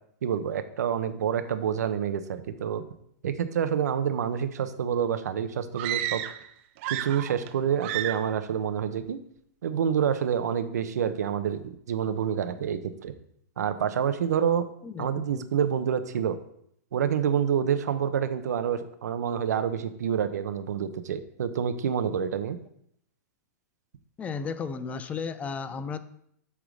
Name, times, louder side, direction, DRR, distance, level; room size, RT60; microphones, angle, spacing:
voice 1, 0.2-2.8 3.2-6.2 6.9-9.2 9.6-13.1 13.6-14.6 15.0-16.4 16.9-22.6, right 8 dB, 80° right, 11 dB, 0.8 m, -27 dB
sound 1, 5.7-6.5 6.8-7.5 7.8-8.4, right 12 dB, 50° right, 0.5 m, -32 dB
voice 2, 14.8-15.4 21.1-21.2 24.2-26.0, left 5 dB, 15° left, 12 dB, 0.5 m, -34 dB
8.3 x 3.7 x 6.3 m, 0.70 s
hypercardioid pair, 135°, 9 cm